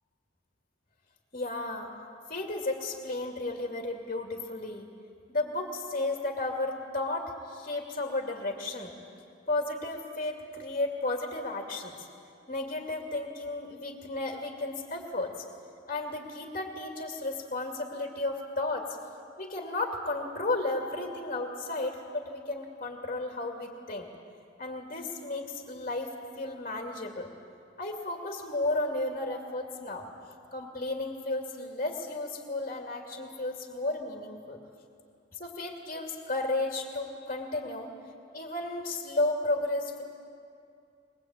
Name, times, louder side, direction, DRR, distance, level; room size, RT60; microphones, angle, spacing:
voice 1, 1.3-1.9 2.3-4.9 5.3-8.9 9.5-12.1 12.5-15.4 15.9-19.0 19.4-24.1 24.6-27.3 27.8-30.1 30.5-34.6 35.3-37.9 38.3-40.0, left 2 dB, 40° left, 2 dB, 2.3 m, -33 dB
23.0 x 21.0 x 8.8 m, 2.5 s
head